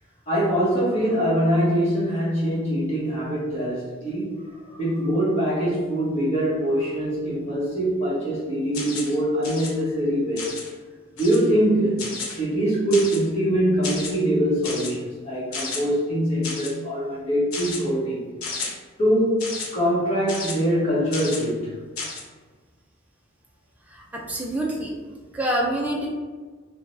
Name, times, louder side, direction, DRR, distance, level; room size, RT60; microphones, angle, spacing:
voice 1, 0.3-10.5 11.1-12.0 12.3-18.2 19.0-21.7, equal, 30° left, -9 dB, 1.1 m, -23 dB
sound 1, 8.7-9.2 9.4-9.7 10.4-10.7 11.2-11.5 12.0-12.4 12.9-13.3 13.8-14.1 14.6-14.9 15.5-15.8 16.4-16.7 17.5-17.8 18.4-18.7 19.4-19.7 20.3-20.5 21.1-21.4 22.0-22.2, left 4 dB, 90° left, 0.6 m, -32 dB
voice 2, 23.9-24.9 25.3-26.1, right 1 dB, 5° right, -3 dB, 0.3 m, -26 dB
2.7 x 2.2 x 2.9 m, 1.4 s
head